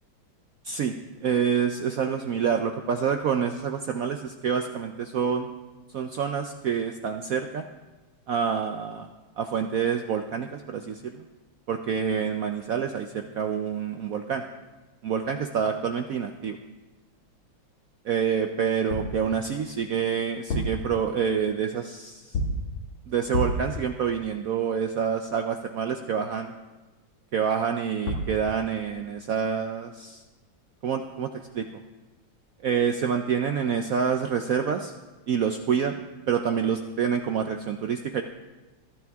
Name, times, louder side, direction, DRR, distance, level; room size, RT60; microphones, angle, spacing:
voice 1, 1.2-5.5 5.9-7.7 8.3-9.1 9.4-11.2 11.7-14.4 15.0-16.6 18.0-22.4 23.1-26.5 27.3-30.2 30.8-31.8 32.6-34.9 35.3-36.0 36.3-38.2, right 7 dB, 70° right, 6 dB, 0.8 m, -27 dB
sound 1, 18.9-19.2 20.3-20.9 22.3-22.7 23.3-23.7 27.8-27.9 28.1-28.4, left 1 dB, 75° left, 2.6 m, -28 dB
22.5 x 12.5 x 3.5 m, 1.2 s
omnidirectional pair, 2.2 m